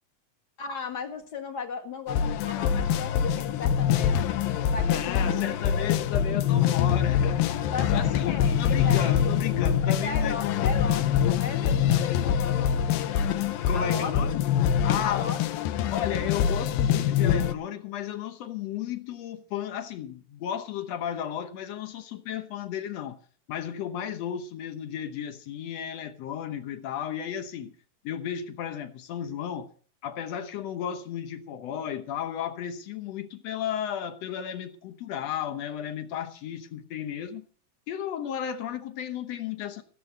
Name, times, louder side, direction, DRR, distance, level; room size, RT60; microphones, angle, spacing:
voice 1, 0.6-4.3 4.7-5.6 7.6-9.3 9.8-13.2 13.7-14.3 15.0-15.4, left 5 dB, 40° left, 1.6 m, -36 dB
sound 1, 2.1-17.5, left 8 dB, 85° left, 2.6 m, -24 dB
voice 2, 4.8-10.8 13.7-14.4 14.8-15.3 15.9-23.2 23.5-27.8 28.0-29.7 30.0-37.5 37.9-39.8, left 9 dB, 65° left, 1.8 m, -34 dB
16.0 x 7.9 x 6.7 m
omnidirectional pair, 4.0 m